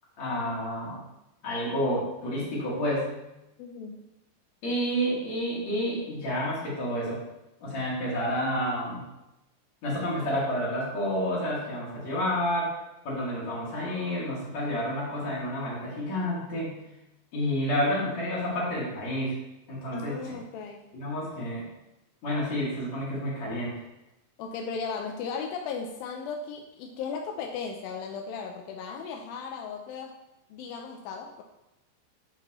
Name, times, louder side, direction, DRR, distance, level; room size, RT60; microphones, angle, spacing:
voice 1, 0.2-1.0 1.4-3.1 4.6-7.2 7.6-9.0 9.8-12.7 13.0-16.8 17.3-19.4 19.7-20.3 20.9-21.6 22.2-23.7, equal, 45° left, -7 dB, 3.3 m, -29 dB
voice 2, 3.6-4.0 19.9-20.8 24.4-30.2 30.5-31.4, left 5 dB, 80° left, 3 dB, 2.1 m, -36 dB
9.2 x 7.6 x 3.1 m, 0.94 s
omnidirectional pair, 4.8 m